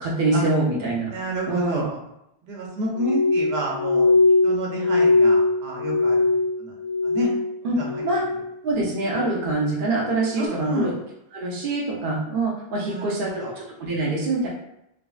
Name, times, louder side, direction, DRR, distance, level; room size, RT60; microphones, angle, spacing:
voice 1, 0.0-1.1 1.5-1.8 7.6-7.7 8.0-8.2 8.6-10.9 11.3-14.5, right 2 dB, 60° right, -5 dB, 0.7 m, -25 dB
voice 2, 1.1-2.0 2.4-4.1 4.4-6.2 6.6-6.7 7.0-7.3 7.8-7.9 10.3-10.9 12.8-13.5, right 1 dB, 90° right, -1 dB, 0.9 m, -29 dB
Glass, 2.9-7.5 7.8-8.5 8.9-9.4 10.0-10.3, left 3 dB, 60° left, 0.6 m, -21 dB
3.5 x 2.0 x 2.3 m, 0.82 s
omnidirectional pair, 1.0 m